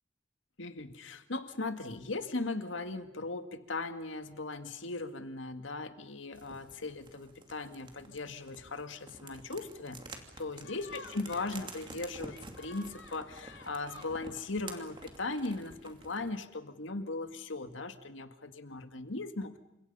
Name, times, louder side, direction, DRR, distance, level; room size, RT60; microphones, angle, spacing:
voice 1, 0.6-19.6, left 3 dB, 85° left, 9 dB, 2.0 m, -38 dB
sound 1, 6.3-16.4, right 2 dB, 25° right, 2.8 m, -50 dB
sound 2, 10.6-15.7, left 3 dB, 70° left, 2.7 m, -54 dB
29.0 x 26.5 x 5.6 m, 0.91 s
head